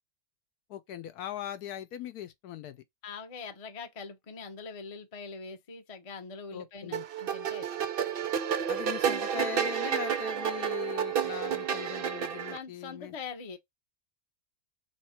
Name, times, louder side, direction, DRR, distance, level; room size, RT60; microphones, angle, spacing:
voice 1, 0.7-2.8 6.5-7.0 8.7-13.1, left 11 dB, 70° left, 1.1 m, -40 dB
voice 2, 3.0-7.7 12.5-13.6, left 5 dB, 35° left, 0.6 m, -43 dB
sound 1, 6.9-12.6, right 8 dB, 70° right, 0.5 m, -30 dB
3.6 x 3.1 x 4.2 m
omnidirectional pair, 1.8 m